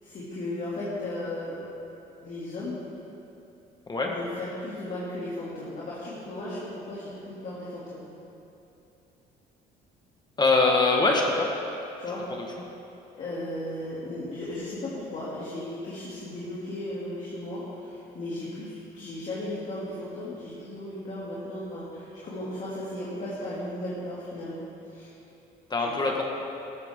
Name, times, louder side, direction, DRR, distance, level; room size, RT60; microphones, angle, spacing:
voice 1, 0.0-1.6 2.2-2.8 4.1-8.0 12.0-12.2 13.1-25.1 25.8-26.0, left 1 dB, 45° left, -8 dB, 2.7 m, -36 dB
voice 2, 10.4-11.5 25.7-26.2, left 3 dB, 25° left, 0 dB, 1.4 m, -22 dB
14.0 x 13.5 x 3.7 m, 2.8 s
cardioid pair, 110°, 17 cm